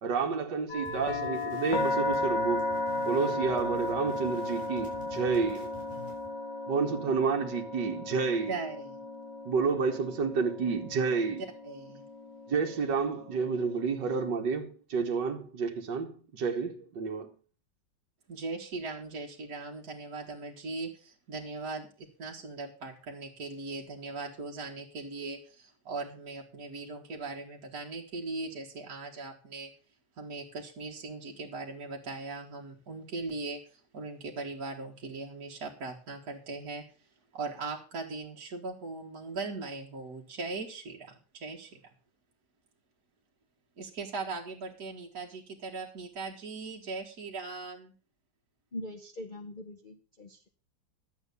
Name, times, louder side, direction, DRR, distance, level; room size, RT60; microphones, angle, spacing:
voice 1, 0.0-5.8 6.7-8.5 9.5-11.4 12.5-17.3, right 5 dB, 75° right, 2.1 m, -30 dB
sound 1, 0.7-14.6, left 2 dB, 75° left, 2.1 m, -35 dB
sound 2, 0.8-6.3, left 3 dB, 5° left, 7.8 m, -49 dB
voice 2, 8.5-9.0 11.6-12.0 18.3-29.7 30.2-36.8 37.3-41.8 43.8-47.9, right 3 dB, 60° right, 2.1 m, -39 dB
voice 3, 48.7-50.5, left 1 dB, 35° left, 0.9 m, -42 dB
11.5 x 8.0 x 6.8 m
omnidirectional pair, 1.9 m